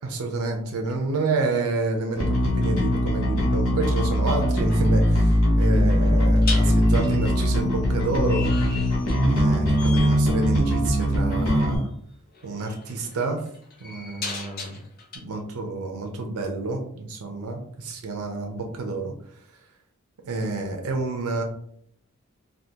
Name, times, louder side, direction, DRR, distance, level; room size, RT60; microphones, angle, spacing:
voice 1, 0.0-8.5 9.3-11.9 12.4-13.4 13.8-14.8 15.1-19.1 20.2-21.4, right 3 dB, 85° right, 2 dB, 0.5 m, -29 dB
Bass guitar, 2.2-11.8, equal, 90° left, 0.9 m, -21 dB
sound 1, 3.8-4.1 6.4-9.5 9.8-10.2 11.7-11.9 12.3-15.2, left 4 dB, 45° left, 0.7 m, -37 dB
3.6 x 2.3 x 2.7 m, 0.66 s
head